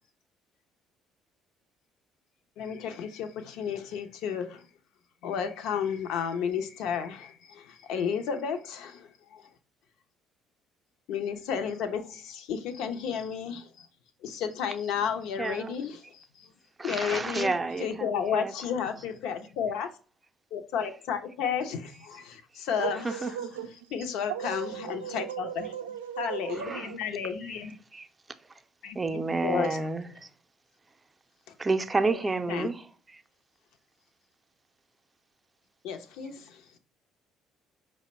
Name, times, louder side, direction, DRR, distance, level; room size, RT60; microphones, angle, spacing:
voice 1, 2.6-4.7 5.2-9.5 11.1-13.9 14.2-16.5 16.8-17.5 17.8-19.9 20.5-23.2 23.9-25.7 26.2-27.8 28.8-29.9 31.5-31.6 32.1-32.2 32.5-32.7 35.8-36.7, left 7 dB, 70° left, 0.5 m, -32 dB
voice 2, 15.4-15.8 16.8-18.5 23.0-23.3 26.6-26.9 27.9-28.1 28.9-30.3 31.6-32.8, right 3 dB, 25° right, 0.5 m, -30 dB
voice 3, 22.8-23.9 24.3-27.0, right 9 dB, 85° right, 0.4 m, -37 dB
5.0 x 2.1 x 4.1 m
hypercardioid pair, 55°, 0 cm